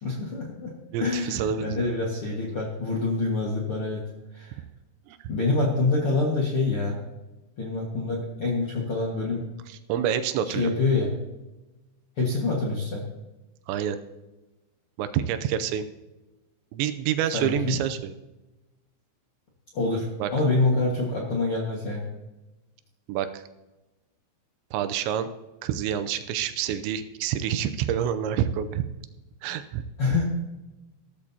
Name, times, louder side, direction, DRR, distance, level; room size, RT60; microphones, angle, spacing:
voice 1, 0.0-0.7 1.0-4.0 4.3-4.6 5.3-7.0 7.6-9.4 10.4-11.2 12.2-13.0 17.3-17.7 19.7-22.1 30.0-30.2, left 3 dB, 60° left, -3 dB, 1.4 m, -26 dB
voice 2, 0.9-1.9 5.1-5.2 9.7-10.7 13.7-14.0 15.0-15.8 16.7-18.1 20.2-20.3 23.1-23.4 24.7-25.3 25.6-28.8 29.4-29.8, right 9 dB, 80° right, 10 dB, 2.9 m, -27 dB
15.0 x 13.5 x 2.8 m, 1.1 s
omnidirectional pair, 5.2 m